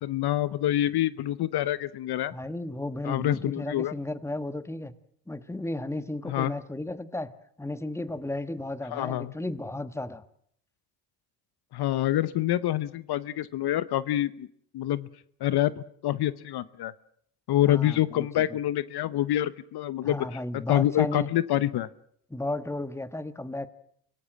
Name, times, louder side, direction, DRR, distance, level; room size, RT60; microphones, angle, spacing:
voice 1, 0.0-2.3 3.0-3.9 6.3-6.5 8.9-9.3 11.7-14.5 14.7-15.1 15.4-16.9 17.5-20.3 20.7-21.9, left 13 dB, 65° left, 17 dB, 0.9 m, -26 dB
voice 2, 2.3-4.9 5.3-10.2 17.6-18.6 20.0-21.3 22.3-23.7, left 2 dB, 5° left, 13 dB, 1.4 m, -34 dB
25.0 x 18.0 x 7.5 m, 0.66 s
cardioid pair, 85°, 42 cm